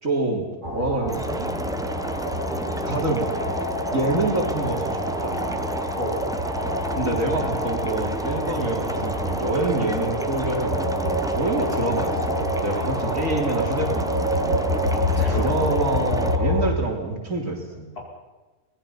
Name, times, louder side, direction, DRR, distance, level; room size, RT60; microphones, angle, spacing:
voice 1, 0.0-1.5 2.9-3.3 3.9-5.7 6.9-14.6 15.3-17.9, right 2 dB, 60° right, 1 dB, 3.9 m, -27 dB
sound 1, 0.6-16.7, equal, 35° right, 3.1 m, -27 dB
sound 2, 1.1-16.4, equal, 5° right, 0.7 m, -32 dB
voice 2, 6.0-6.3 14.9-15.9, equal, 90° left, -2 dB, 6.1 m, -31 dB
24.5 x 19.5 x 5.7 m, 1.2 s
omnidirectional pair, 1.6 m